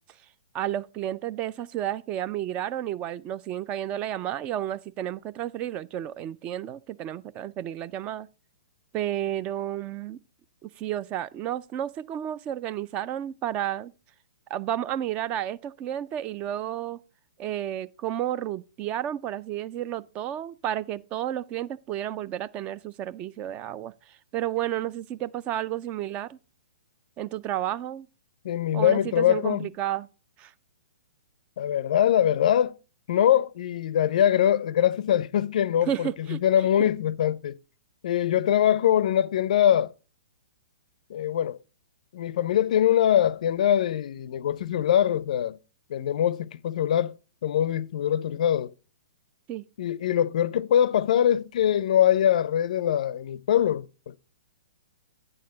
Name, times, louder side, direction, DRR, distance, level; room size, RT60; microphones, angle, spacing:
voice 1, 0.5-8.3 8.9-10.2 10.6-13.9 14.5-17.0 17.4-26.4 27.2-28.1 28.7-30.1 30.4-30.5 35.8-36.4 36.8-36.9 49.5-49.6, right 11 dB, 25° right, 0.3 m, -31 dB
voice 2, 28.4-29.7 31.6-32.8 33.1-37.6 38.0-39.9 41.1-41.6 42.1-45.6 45.9-47.1 47.4-48.7 49.8-54.2, left 10 dB, 60° left, 0.4 m, -23 dB
8.8 x 6.5 x 3.9 m
hypercardioid pair, 125°, 5 cm